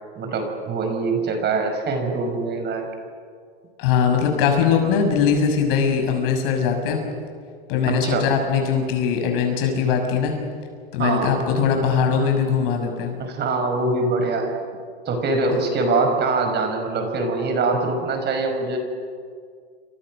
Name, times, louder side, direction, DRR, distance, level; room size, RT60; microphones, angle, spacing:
voice 1, 0.2-2.9 7.8-8.2 11.0-11.3 13.2-14.5 15.1-18.8, right 3 dB, 35° right, 5 dB, 5.6 m, -23 dB
voice 2, 3.8-7.0 7.7-10.3 10.9-13.2, left 6 dB, 60° left, 3 dB, 6.9 m, -21 dB
29.5 x 25.5 x 6.4 m, 2.1 s
hypercardioid pair, 120°, 31 cm